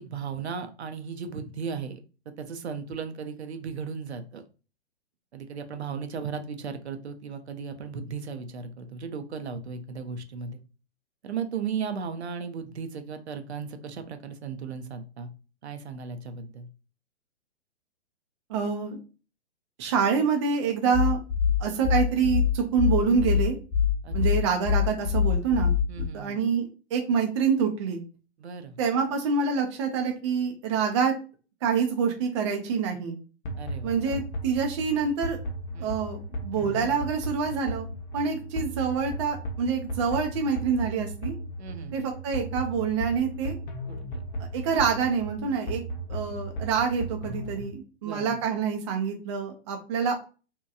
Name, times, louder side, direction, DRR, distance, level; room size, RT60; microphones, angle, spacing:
voice 1, 0.0-2.0 2.4-4.4 5.3-10.6 11.2-15.3 15.6-16.7 24.0-24.2 25.9-26.4 28.4-28.8 33.6-34.2 35.7-36.0 41.6-42.0 43.9-44.2 48.0-48.4, right 6 dB, 70° right, 7 dB, 0.6 m, -36 dB
voice 2, 18.5-19.0 19.8-21.2 21.6-23.6 24.1-25.8 26.1-26.6 26.9-28.0 28.8-31.1 31.6-33.2 33.8-35.4 35.8-37.9 38.1-41.3 41.9-43.5 44.5-45.8 46.1-50.2, right 6 dB, 30° right, 2 dB, 0.4 m, -26 dB
sound 1, 20.9-26.1, left 8 dB, 15° left, 1.0 m, -24 dB
sound 2, 33.4-47.7, equal, 45° left, 0.8 m, -36 dB
2.8 x 2.2 x 2.3 m, 0.34 s
figure-of-eight pair, 120°, 34 cm